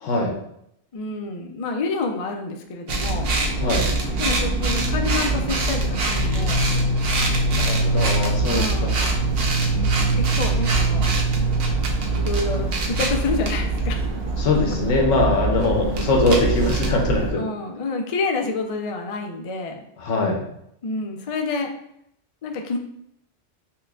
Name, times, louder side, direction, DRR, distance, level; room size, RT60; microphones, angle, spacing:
voice 1, 0.0-0.3 3.6-3.9 7.5-9.2 14.4-17.4 20.0-20.4, left 2 dB, 90° left, 0 dB, 1.1 m, -22 dB
voice 2, 0.9-3.3 4.2-6.6 8.5-9.0 9.7-11.2 12.1-14.1 17.4-19.9 20.8-21.7 22.4-22.8, left 3 dB, 65° left, 3 dB, 0.3 m, -28 dB
sound 1, 2.9-17.3, right 2 dB, 60° right, 0.8 m, -23 dB
5.6 x 2.4 x 2.3 m, 0.76 s
omnidirectional pair, 1.2 m